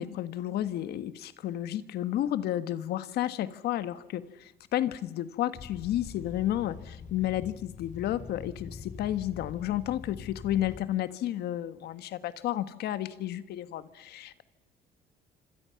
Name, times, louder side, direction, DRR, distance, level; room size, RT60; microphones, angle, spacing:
voice 1, 0.0-14.4, left 12 dB, 70° left, 13 dB, 1.5 m, -32 dB
sound 1, 5.5-10.8, left 6 dB, 50° left, 3.5 m, -44 dB
26.5 x 26.0 x 5.8 m, 0.94 s
cardioid pair, 110°, 17 cm